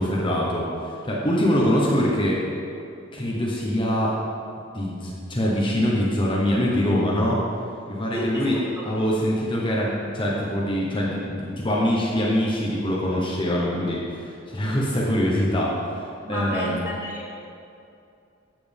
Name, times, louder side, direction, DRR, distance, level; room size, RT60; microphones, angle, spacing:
voice 1, 0.0-2.4 3.1-4.1 4.7-7.4 7.9-8.6 8.8-16.0 16.3-16.9, equal, 25° left, -4 dB, 1.2 m, -24 dB
voice 2, 8.1-8.9 16.2-17.3, equal, 15° right, -4 dB, 1.8 m, -31 dB
13.5 x 7.7 x 3.6 m, 2.5 s
head